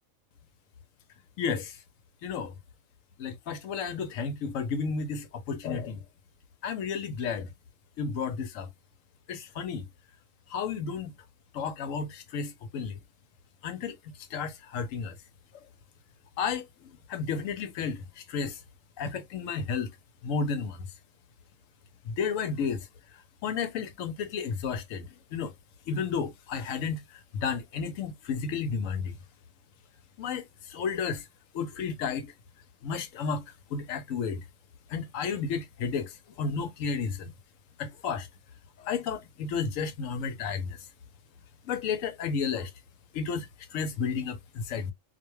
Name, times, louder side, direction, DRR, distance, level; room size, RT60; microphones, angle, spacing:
voice 1, 1.4-1.8 2.2-2.5 3.2-6.0 6.6-7.5 8.0-8.7 9.3-9.8 10.5-11.1 11.5-13.0 13.6-14.0 14.3-15.2 16.4-16.6 17.1-18.6 19.0-19.9 20.2-20.8 22.1-22.9 23.4-25.5 25.9-27.0 27.3-29.1 30.2-31.2 31.5-32.3 32.8-33.4 33.7-34.4 34.9-36.1 36.4-37.3 37.8-38.3 38.8-40.8 41.7-42.7 43.1-43.5 43.7-44.9, left 5 dB, 80° left, 1.0 m, -32 dB
2.5 x 2.2 x 3.0 m
omnidirectional pair, 1.4 m